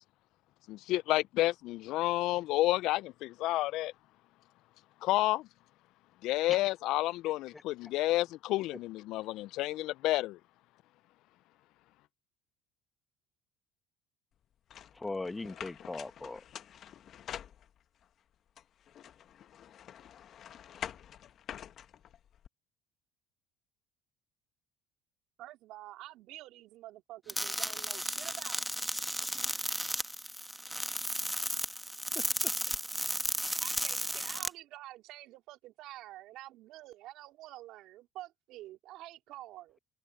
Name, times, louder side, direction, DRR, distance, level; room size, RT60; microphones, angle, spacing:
voice 1, 0.7-3.9 5.0-5.5 6.2-10.4, left 17 dB, 70° left, 0.3 m, -30 dB
sound 1, 14.7-18.0 18.6-22.5, left 10 dB, 50° left, 1.2 m, -47 dB
voice 2, 14.9-16.4 32.1-32.5, left 3 dB, 15° left, 1.4 m, -39 dB
voice 3, 25.4-28.7 33.6-39.8, right 15 dB, 65° right, 3.6 m, -48 dB
sound 2, 27.3-34.5, equal, ahead, 1.2 m, -34 dB
supercardioid pair, 90°, 0 cm